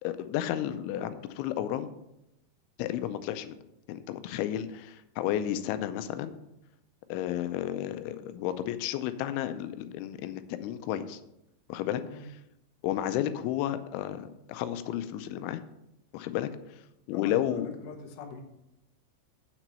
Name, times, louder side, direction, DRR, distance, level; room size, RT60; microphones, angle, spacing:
voice 1, 0.0-1.9 2.8-3.6 3.9-6.4 7.1-11.2 11.7-12.0 12.8-15.6 16.1-16.8 17.1-17.7, left 11 dB, 85° left, 11 dB, 3.0 m, -32 dB
voice 2, 17.1-18.4, left 5 dB, 70° left, 3 dB, 2.1 m, -44 dB
7.7 x 6.0 x 6.8 m, 0.85 s
omnidirectional pair, 5.3 m